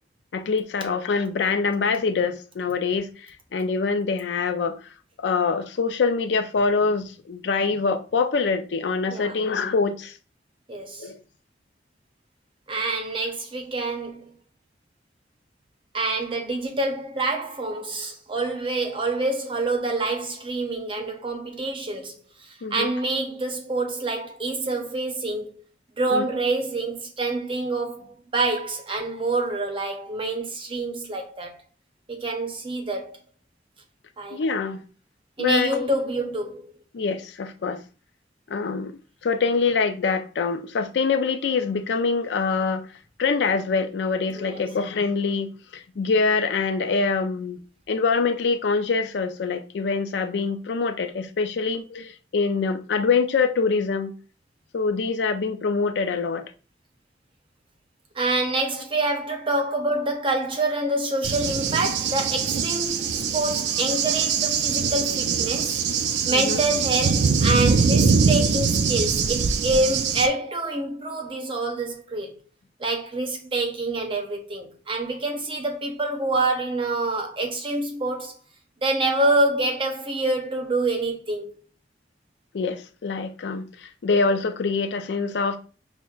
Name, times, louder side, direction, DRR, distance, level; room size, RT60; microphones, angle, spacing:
voice 1, 0.3-4.8 5.2-10.1 11.0-11.2 22.6-22.9 26.1-26.3 34.3-34.8 35.4-35.9 36.9-37.8 38.5-42.8 43.2-47.6 47.9-54.1 54.7-56.5 66.3-66.6 82.5-85.6, left 4 dB, 80° left, 0.4 m, -25 dB
voice 2, 10.7-11.1 12.7-14.4 15.9-25.6 26.0-31.6 32.1-33.2 34.2-34.4 35.4-36.7 44.3-44.6 58.1-65.8 66.3-72.4 72.8-78.4 78.8-81.5, right 2 dB, 30° right, 0.7 m, -26 dB
Cricket / Thunder, 61.2-70.3, right 5 dB, 75° right, 0.4 m, -23 dB
5.8 x 2.1 x 2.3 m
head